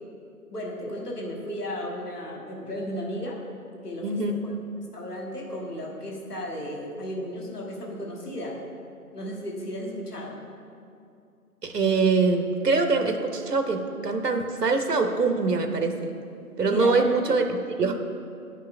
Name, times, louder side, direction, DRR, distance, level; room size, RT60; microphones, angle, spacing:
voice 1, 0.5-3.4 3.8-4.5 4.9-8.6 9.1-10.4 16.6-17.2, equal, 80° left, -2 dB, 1.5 m, -34 dB
voice 2, 4.0-4.3 11.6-16.2 16.6-18.0, right 4 dB, 90° right, 5 dB, 0.8 m, -24 dB
9.5 x 5.5 x 2.5 m, 2.5 s
figure-of-eight pair, 165°, 46 cm